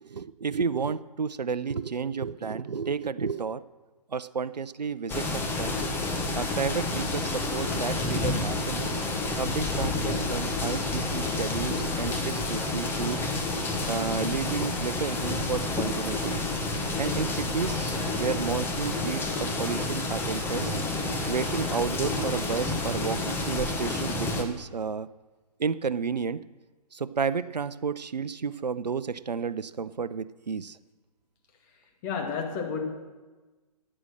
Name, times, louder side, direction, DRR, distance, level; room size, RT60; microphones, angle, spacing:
voice 1, 0.0-3.6 4.1-5.8 6.3-8.9 9.4-13.3 13.9-16.4 17.0-20.7 21.3-25.1 25.6-26.4 26.9-30.8, right 5 dB, 85° right, 14 dB, 0.6 m, -31 dB
sound 1, 5.1-24.4, left 2 dB, 10° left, 1.2 m, -29 dB
voice 2, 32.0-32.8, left 5 dB, 30° left, 3 dB, 2.4 m, -31 dB
14.0 x 8.7 x 6.5 m, 1.3 s
figure-of-eight pair, 135°, 21 cm